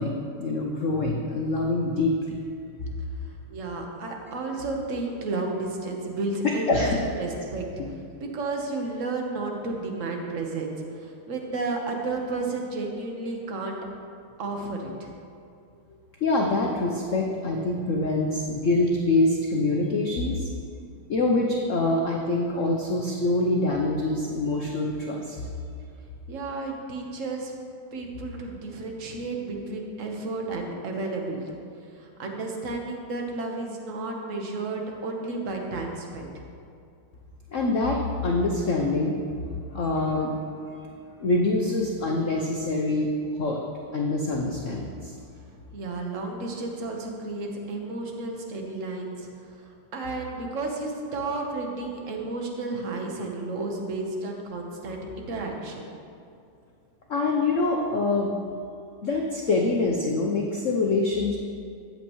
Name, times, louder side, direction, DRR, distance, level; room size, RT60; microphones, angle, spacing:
voice 1, 0.0-2.4 6.4-7.0 7.8-7.9 16.2-20.5 21.1-25.4 37.5-39.2 39.7-40.3 40.7-40.8 41.2-43.1 43.4-43.6 43.9-45.1 57.1-58.4 59.0-61.4, left 2 dB, 80° left, -1 dB, 0.6 m, -25 dB
voice 2, 3.2-7.7 8.2-13.8 14.4-15.1 26.3-27.5 27.9-36.3 45.7-55.9, right 3 dB, 45° right, 1 dB, 1.2 m, -32 dB
13.5 x 8.8 x 3.1 m, 2.4 s
omnidirectional pair, 2.4 m